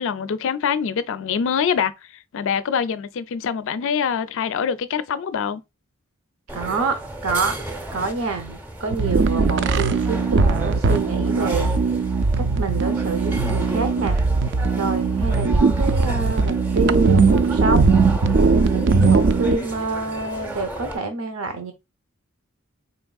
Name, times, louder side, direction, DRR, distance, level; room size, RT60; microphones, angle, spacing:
voice 1, 0.0-5.6, left 7 dB, 60° left, 0.4 m, -24 dB
sound 1, 6.5-21.0, right 1 dB, 10° right, 0.6 m, -34 dB
voice 2, 6.5-11.7 12.4-14.2 14.8-18.0 18.7-21.7, right 3 dB, 75° right, 0.7 m, -27 dB
sound 2, 8.9-19.6, right 4 dB, 55° right, 0.4 m, -19 dB
4.3 x 3.5 x 2.3 m
head